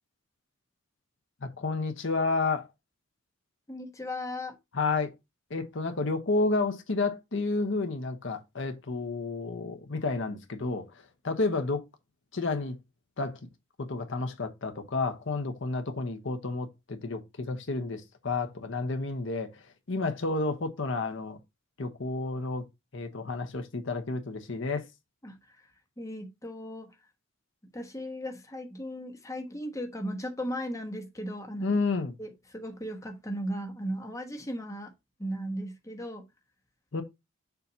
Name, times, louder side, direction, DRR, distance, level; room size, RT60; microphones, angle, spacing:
voice 1, 1.4-2.7 4.7-5.1 5.5-10.9 11.2-11.8 12.3-12.8 13.2-13.4 13.8-19.6 19.9-21.4 21.8-22.6 22.9-24.9 31.6-32.1 36.9-37.0, left 3 dB, 65° left, 0.9 m, -30 dB
voice 2, 3.7-4.6 25.2-25.6 26.0-26.9 27.7-31.8 32.2-34.9 35.2-36.2, equal, 15° left, 1.1 m, -36 dB
6.8 x 2.7 x 5.5 m
head